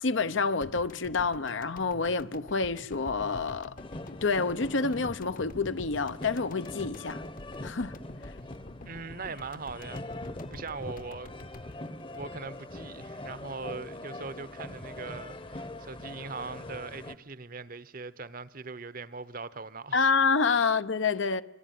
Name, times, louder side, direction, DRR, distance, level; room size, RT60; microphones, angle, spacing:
voice 1, 0.0-3.8 4.2-7.2 7.6-7.9 19.9-21.4, left 4 dB, 75° left, 0.9 m, -28 dB
sound 1, 0.6-12.9 13.2-13.3, left 1 dB, 45° left, 1.0 m, -48 dB
sound 2, 3.8-17.1, left 1 dB, 25° left, 1.0 m, -43 dB
voice 2, 8.8-10.1 10.5-11.3 12.1-20.1, right 4 dB, 45° right, 0.9 m, -40 dB
25.5 x 24.0 x 9.5 m
head